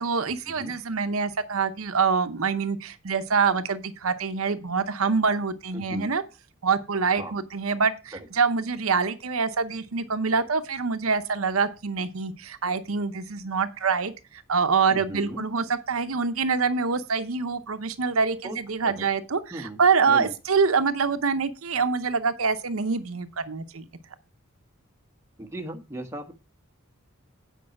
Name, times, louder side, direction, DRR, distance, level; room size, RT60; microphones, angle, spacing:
voice 1, 0.0-6.2 6.6-19.4 19.8-23.8, right 5 dB, 80° right, 0.8 m, -25 dB
voice 2, 5.7-6.1 7.2-7.3 8.1-8.3 14.9-15.5 18.4-18.6 18.8-19.1 19.5-19.8 20.1-20.3 25.4-26.3, right 1 dB, 15° right, 1.2 m, -37 dB
8.7 x 5.4 x 5.9 m
head